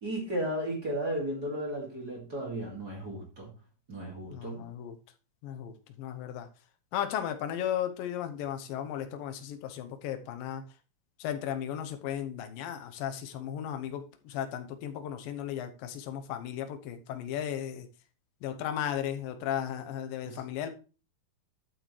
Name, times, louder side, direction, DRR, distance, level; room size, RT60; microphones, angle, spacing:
voice 1, 0.0-3.5 3.9-4.7 20.2-20.4, right 1 dB, 30° right, -1 dB, 2.6 m, -34 dB
voice 2, 4.3-5.0 5.4-6.5 6.9-10.6 11.2-17.9 18.4-20.7, left 10 dB, 75° left, 7 dB, 2.6 m, -35 dB
12.0 x 7.5 x 3.2 m, 0.34 s
omnidirectional pair, 4.2 m